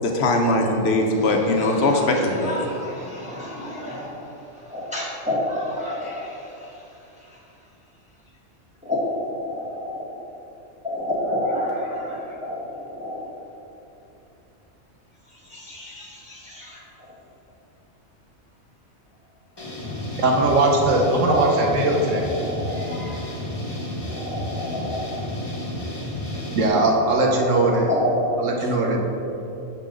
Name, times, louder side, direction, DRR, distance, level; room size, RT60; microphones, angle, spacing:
voice 1, 0.0-2.5, left 2 dB, 60° left, 2 dB, 0.9 m, -20 dB
voice 2, 1.1-7.5 8.8-10.1 10.8-13.2 15.3-17.1 20.8-23.2 24.1-25.1 27.1-28.5 28.9-29.0, left 1 dB, 5° right, -7 dB, 1.1 m, -30 dB
sound 1, 19.6-26.7, left 1 dB, 20° left, 1.1 m, -31 dB
voice 3, 20.2-22.3 26.5-27.9 28.4-29.0, right 2 dB, 75° right, 1 dB, 1.3 m, -20 dB
6.7 x 5.4 x 3.7 m, 3.0 s
omnidirectional pair, 1.3 m